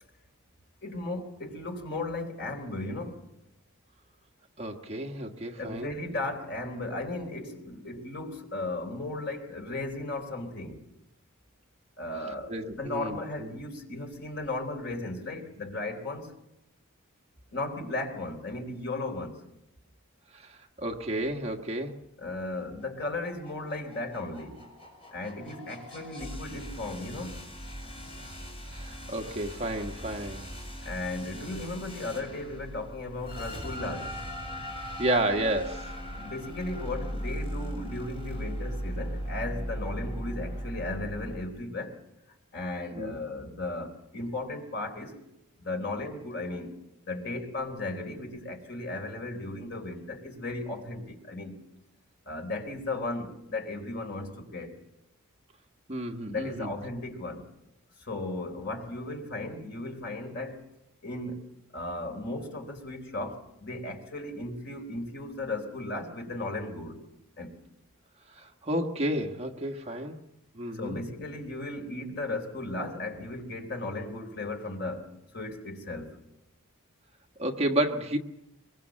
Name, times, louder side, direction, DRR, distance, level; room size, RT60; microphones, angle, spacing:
voice 1, 0.8-3.2 5.6-10.8 12.0-16.3 17.5-19.4 22.2-24.6 25.1-27.4 30.8-34.2 36.2-42.0 42.5-45.2 45.6-46.8 47.1-51.5 52.3-54.8 56.3-57.5 58.0-60.6 61.0-61.4 61.7-67.0 67.4-67.5 70.7-76.2, left 2 dB, 50° left, 3.8 m, -36 dB
voice 2, 4.6-6.0 12.5-13.6 20.3-22.0 28.7-30.4 35.0-35.9 43.0-43.2 55.9-56.7 68.3-70.2 70.5-71.0 77.4-78.2, right 1 dB, 30° right, 1.4 m, -31 dB
sound 1, 22.6-41.4, equal, 25° left, 6.4 m, -39 dB
24.5 x 23.0 x 7.4 m
head